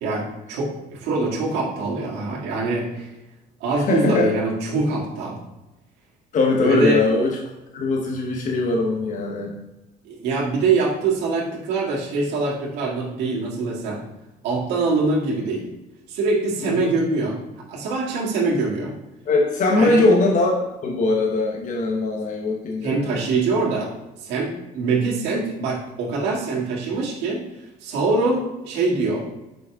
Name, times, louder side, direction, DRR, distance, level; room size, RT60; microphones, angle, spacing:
voice 1, 0.0-3.1 3.6-5.4 6.6-7.0 10.0-14.0 14.4-15.7 16.1-17.4 17.7-18.9 19.8-20.0 22.8-23.9 24.2-27.4 27.8-29.3, right 3 dB, 85° right, -4 dB, 1.9 m, -24 dB
voice 2, 3.7-4.3 6.3-7.4 7.7-9.6 16.6-16.9 19.2-23.2 24.8-25.0, left 2 dB, 50° left, -1 dB, 1.1 m, -21 dB
6.1 x 5.0 x 3.6 m, 1.0 s
cardioid pair, 110°, 17 cm